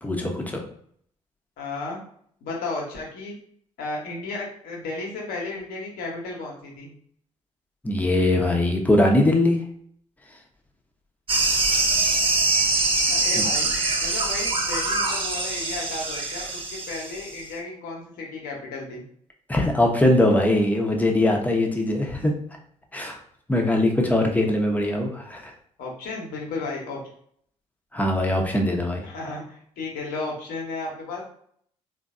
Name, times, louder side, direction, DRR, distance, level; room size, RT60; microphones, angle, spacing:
voice 1, 0.0-0.6 7.8-9.6 13.4-13.5 19.5-22.3 22.9-23.2 23.5-25.5 27.9-29.0, left 1 dB, 10° left, 1 dB, 0.9 m, -21 dB
voice 2, 1.6-2.0 2.4-3.4 3.8-6.9 13.1-13.7 14.0-19.0 25.8-27.0 29.0-31.2, left 3 dB, 65° left, -1 dB, 1.1 m, -33 dB
sound 1, 11.3-17.4, right 3 dB, 35° right, 0.9 m, -24 dB
3.7 x 2.5 x 2.6 m, 0.63 s
figure-of-eight pair, 45°, 16 cm